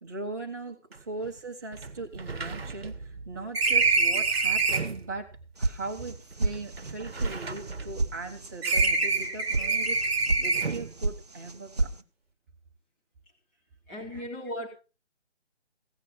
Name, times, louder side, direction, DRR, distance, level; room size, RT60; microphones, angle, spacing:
voice 1, 0.0-0.8 1.1-12.0 14.1-14.2, right 3 dB, 15° right, -1 dB, 1.2 m, -39 dB
sound 1, 0.9-1.0 1.2-1.3 1.7-5.0 5.9-8.3 8.6-10.9, right 4 dB, 60° right, 1.1 m, -27 dB
sound 2, 5.6-6.1 6.4-6.9 7.2-7.3 7.7-8.1 8.4-8.9 9.2-9.6 10.0-10.4 10.7-11.2 11.4-11.9, right 2 dB, 35° right, 0.6 m, -28 dB
voice 2, 13.9-14.7, equal, 10° left, -1 dB, 1.2 m, -36 dB
16.0 x 8.9 x 4.7 m, 0.33 s
figure-of-eight pair, 155°, 35 cm